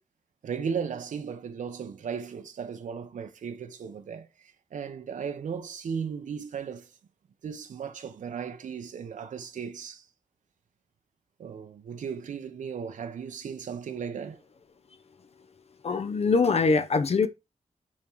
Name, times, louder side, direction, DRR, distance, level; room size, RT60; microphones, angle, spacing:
voice 1, 0.4-6.9 7.4-10.1 11.4-14.4, right 6 dB, 90° right, 0.8 m, -36 dB
voice 2, 15.8-17.3, left 4 dB, 55° left, 0.7 m, -23 dB
8.7 x 3.8 x 4.6 m
wide cardioid pair, 115°, 13 cm